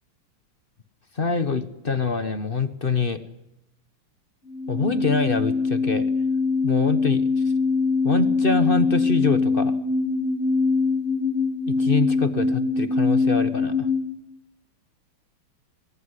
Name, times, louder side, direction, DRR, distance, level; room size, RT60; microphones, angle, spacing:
voice 1, 1.1-3.2 4.7-6.1 6.6-7.5 8.0-9.8 11.7-13.9, left 4 dB, 35° left, 11 dB, 1.0 m, -25 dB
sound 1, 4.4-14.1, left 4 dB, 80° left, 5.6 m, -23 dB
24.0 x 21.0 x 9.8 m, 0.88 s
omnidirectional pair, 2.4 m